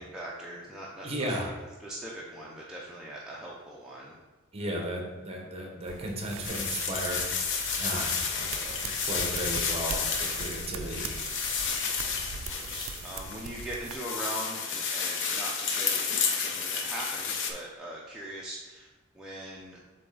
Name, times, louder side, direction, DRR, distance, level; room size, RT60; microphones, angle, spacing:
voice 1, 0.0-1.5 1.8-4.2 12.5-18.9 19.1-19.8, right 1 dB, 5° right, -6 dB, 0.6 m, -41 dB
voice 2, 1.0-1.5 4.5-8.7 9.0-11.4, right 1 dB, 30° right, 0 dB, 1.1 m, -35 dB
sound 1, 5.9-14.0, right 7 dB, 60° right, 0.3 m, -41 dB
sound 2, 6.4-17.5, left 5 dB, 60° left, 0.6 m, -31 dB
7.2 x 3.3 x 3.9 m, 1.2 s
head